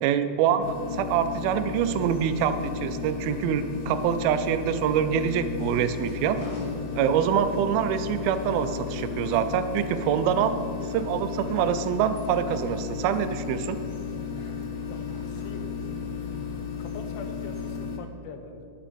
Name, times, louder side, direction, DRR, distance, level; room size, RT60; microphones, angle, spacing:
voice 1, 0.0-6.4 7.0-10.5 10.9-13.8, right 8 dB, 90° right, 10 dB, 2.4 m, -25 dB
sound 1, 0.6-18.0, left 6 dB, 75° left, 1.7 m, -34 dB
sound 2, 1.9-17.7, equal, 40° left, 1.2 m, -47 dB
voice 2, 14.9-16.0 16.5-18.7, left 5 dB, 90° left, 6 dB, 2.7 m, -44 dB
10.0 x 8.7 x 5.2 m, 2.5 s
omnidirectional pair, 4.2 m